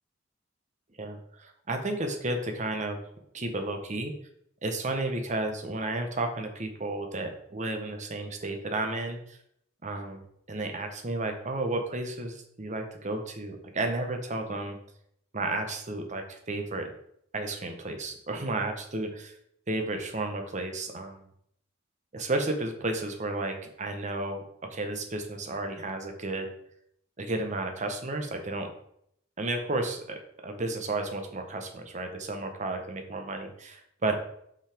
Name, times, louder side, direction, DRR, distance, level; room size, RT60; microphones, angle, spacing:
voice 1, 1.0-3.0 3.3-4.1 4.6-9.4 9.8-14.8 15.3-16.9 17.3-19.3 19.7-21.2 22.1-24.4 24.7-26.5 27.2-28.7 29.4-34.1, right 2 dB, 40° right, 5 dB, 1.1 m, -32 dB
5.8 x 5.6 x 5.0 m, 0.71 s
head